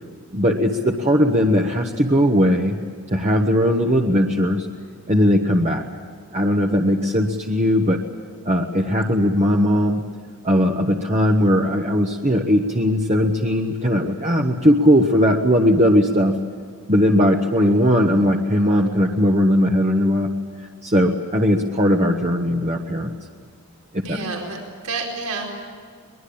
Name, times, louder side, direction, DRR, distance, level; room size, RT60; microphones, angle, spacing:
voice 1, 0.3-2.8 3.1-4.7 5.1-5.8 6.3-8.0 8.4-10.0 10.4-16.4 16.9-20.3 20.8-23.1 23.9-24.2, equal, 30° right, 1 dB, 1.3 m, -18 dB
voice 2, 24.0-25.5, right 3 dB, 80° right, 1 dB, 4.5 m, -29 dB
23.5 x 21.5 x 8.8 m, 2.1 s
head